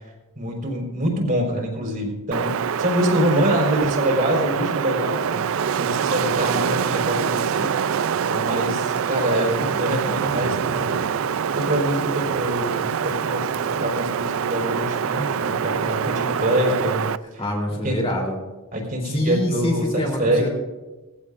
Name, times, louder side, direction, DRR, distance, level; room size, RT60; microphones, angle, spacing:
voice 1, 0.4-5.5 5.8-7.7 8.3-11.0 11.5-17.4 17.8-18.1 18.7-19.8 20.2-20.5, equal, 40° right, -1 dB, 4.4 m, -25 dB
Wind, 2.3-17.2, right 7 dB, 70° right, 0.4 m, -25 dB
voice 2, 17.4-18.4 19.0-20.5, left 1 dB, 25° left, 0 dB, 3.3 m, -25 dB
21.0 x 15.5 x 2.5 m, 1.2 s
head